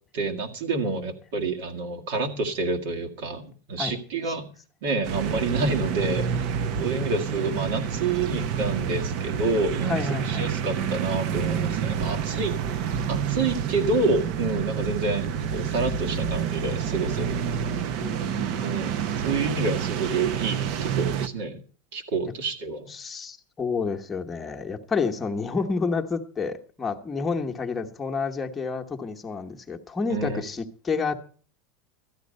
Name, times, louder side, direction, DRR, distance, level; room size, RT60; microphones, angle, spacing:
voice 1, 0.1-4.5 4.8-6.5 6.8-17.4 18.6-21.6 21.9-22.9 30.1-30.4, right 3 dB, 70° right, 2.0 m, -28 dB
sound 1, 5.0-21.3, right 8 dB, 50° right, 0.7 m, -28 dB
voice 2, 6.8-7.2 9.9-10.5 18.0-18.7 22.9-31.1, left 4 dB, 15° left, 1.1 m, -29 dB
13.5 x 9.8 x 5.2 m
supercardioid pair, 150°, 0 cm